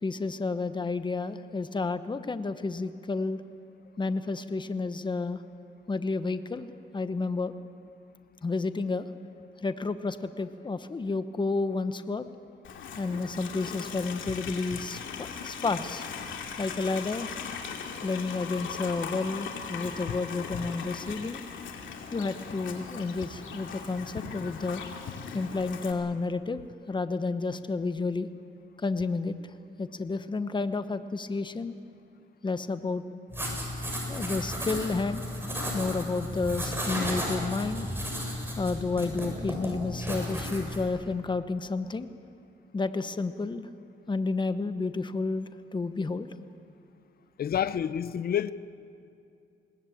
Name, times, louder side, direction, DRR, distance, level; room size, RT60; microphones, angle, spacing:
voice 1, 0.0-3.4 4.0-5.4 5.9-6.7 6.9-7.5 8.4-9.1 9.6-12.3 13.0-16.1 16.6-17.3 18.0-21.4 22.1-24.8 25.3-26.6 26.9-28.3 28.8-29.3 29.8-31.7 32.4-33.0 34.1-35.2 35.7-37.9 38.6-42.1 42.7-43.7 44.1-46.3, left 3 dB, 25° left, 1.1 m, -31 dB
Livestock farm animals working animals, 12.6-25.9, left 6 dB, 75° left, 2.6 m, -39 dB
sound 1, 33.3-40.8, equal, 10° right, 7.3 m, -34 dB
voice 2, 47.4-48.5, left 9 dB, 50° left, 0.8 m, -28 dB
21.5 x 19.0 x 8.7 m
cardioid pair, 90°, 20 cm